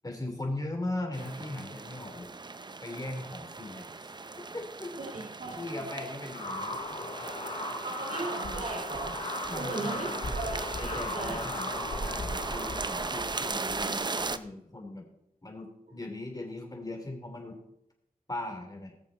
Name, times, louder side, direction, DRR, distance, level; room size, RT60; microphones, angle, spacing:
voice 1, 0.0-2.3 2.8-4.1 4.5-4.9 5.6-7.0 9.5-10.3 10.8-15.1 15.4-17.6 18.3-18.9, left 2 dB, 25° left, 3 dB, 3.3 m, -39 dB
sound 1, 1.1-14.4, right 3 dB, 30° right, 0.5 m, -38 dB
voice 2, 5.0-5.6 7.8-9.2 9.5-11.4, right 2 dB, 60° right, -2 dB, 3.0 m, -37 dB
sound 2, 6.3-14.4, left 2 dB, 75° left, 4.2 m, -38 dB
20.0 x 6.8 x 4.2 m, 0.80 s
wide cardioid pair, 75°, 15 cm